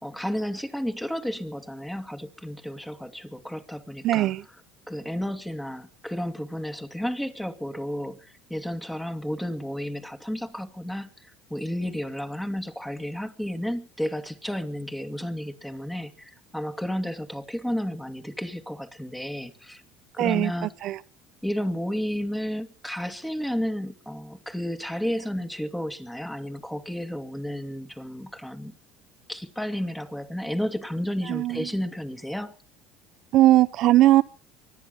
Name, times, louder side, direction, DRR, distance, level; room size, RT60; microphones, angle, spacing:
voice 1, 0.0-4.3 4.9-19.8 20.1-20.7 21.4-28.7 29.3-32.6, equal, 5° left, 2.2 m, -32 dB
voice 2, 4.0-4.4 20.2-20.5 20.8-21.0 31.3-31.7 33.3-34.2, right 15 dB, 60° right, 0.7 m, -19 dB
24.0 x 10.5 x 5.5 m
supercardioid pair, 90°, 0 cm